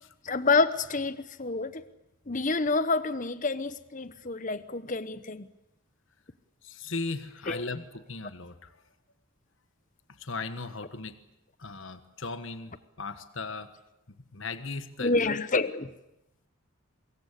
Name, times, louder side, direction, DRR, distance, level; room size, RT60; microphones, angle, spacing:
voice 1, 0.2-1.8 2.3-5.4 7.5-7.6 15.0-15.9, left 3 dB, 35° left, 1.0 m, -28 dB
voice 2, 6.6-8.7 10.1-11.2 11.6-13.7 14.3-15.7, left 3 dB, 55° left, 1.5 m, -38 dB
24.0 x 22.5 x 8.5 m
head